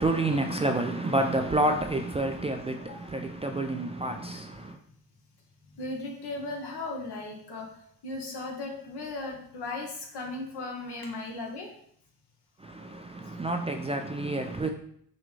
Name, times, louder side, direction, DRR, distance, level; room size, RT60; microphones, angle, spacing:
voice 1, 0.0-4.8 12.6-14.7, right 2 dB, 15° right, 0.3 m, -29 dB
voice 2, 5.7-7.7 8.0-11.7, left 2 dB, 70° left, 1.2 m, -36 dB
5.9 x 2.2 x 3.2 m
supercardioid pair, 60°, 42 cm